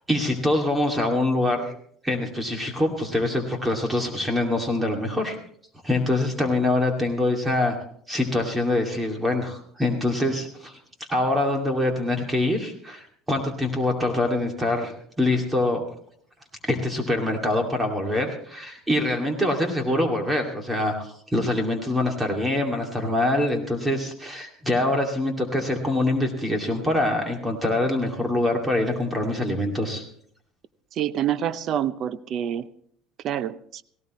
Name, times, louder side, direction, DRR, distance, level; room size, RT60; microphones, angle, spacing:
voice 1, 0.1-1.7 2.0-5.4 5.8-7.8 8.1-10.7 11.1-15.8 16.6-30.1, left 1 dB, 10° right, 2 dB, 2.4 m, -24 dB
voice 2, 30.9-32.7 33.2-33.8, right 10 dB, 45° right, 14 dB, 0.7 m, -27 dB
18.0 x 17.5 x 3.1 m, 0.62 s
cardioid pair, 135°, 0 cm